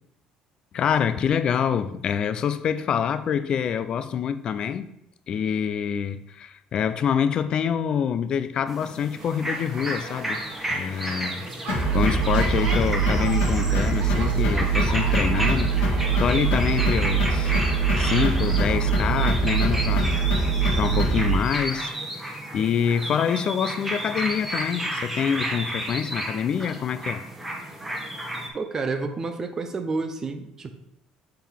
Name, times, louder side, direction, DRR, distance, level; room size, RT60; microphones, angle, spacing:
voice 1, 0.7-4.9 5.3-10.4 10.7-11.4 11.9-15.7 16.2-17.6 18.0-20.2 20.8-27.2, left 8 dB, 35° left, 0.4 m, -26 dB
sound 1, 8.7-28.5, right 1 dB, 10° right, 1.0 m, -32 dB
sound 2, 9.2-18.6, right 2 dB, 55° right, 1.1 m, -37 dB
sound 3, 11.7-21.3, right 4 dB, 75° left, 1.6 m, -23 dB
voice 2, 28.5-30.7, right 3 dB, 25° right, 0.5 m, -29 dB
7.6 x 4.5 x 3.5 m
cardioid pair, 165°, 2 cm